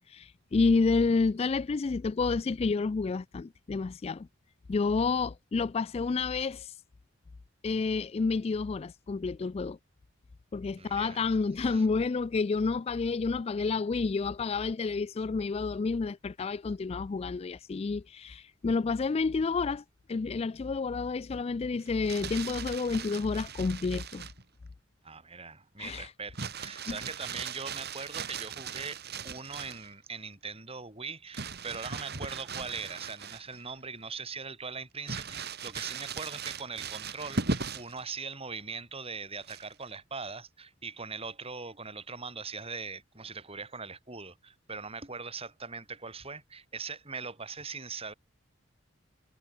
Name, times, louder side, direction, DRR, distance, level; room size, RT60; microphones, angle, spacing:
voice 1, 0.0-4.3 4.7-6.7 7.6-9.8 10.5-19.8 20.1-24.3 25.8-26.1 26.9-27.0, left 4 dB, 30° left, 0.3 m, -29 dB
voice 2, 10.8-11.2 11.6-11.9 25.0-48.1, right 4 dB, 30° right, 7.4 m, -41 dB
Crumpling crinkling, 21.9-24.4 26.3-29.9 31.3-33.7 34.1-34.2 35.1-38.0 39.4-39.9, right 4 dB, 50° right, 3.2 m, -38 dB
head